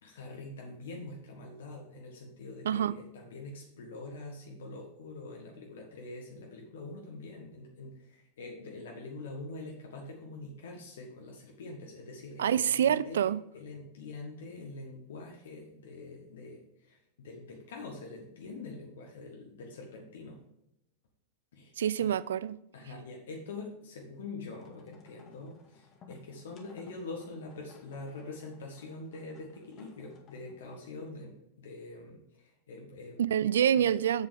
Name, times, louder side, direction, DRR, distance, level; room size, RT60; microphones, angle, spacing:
voice 1, 0.0-13.3 13.5-16.6 16.9-20.4 21.5-21.7 22.0-22.1 22.7-33.2, left 3 dB, 60° left, 0 dB, 1.7 m, -44 dB
voice 2, 2.6-3.0 12.4-13.4 21.8-22.6 33.2-34.3, right 9 dB, 65° right, 18 dB, 0.4 m, -26 dB
sound 1, 24.5-31.0, left 5 dB, 30° left, 1.9 m, -58 dB
8.2 x 7.8 x 3.7 m, 0.81 s
figure-of-eight pair, 90°, 0 cm